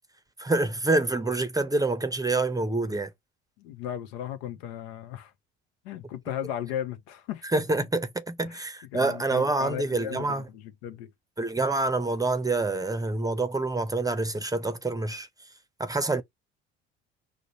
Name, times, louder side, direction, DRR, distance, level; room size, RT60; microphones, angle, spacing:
voice 1, 0.4-3.1 7.5-10.4 11.4-15.3 15.8-16.2, right 2 dB, 10° right, 0.6 m, -27 dB
voice 2, 3.6-5.3 5.8-7.5 8.4-8.6 8.9-11.1, left 10 dB, 80° left, 0.8 m, -36 dB
5.0 x 2.1 x 4.1 m
hypercardioid pair, 65°, 32 cm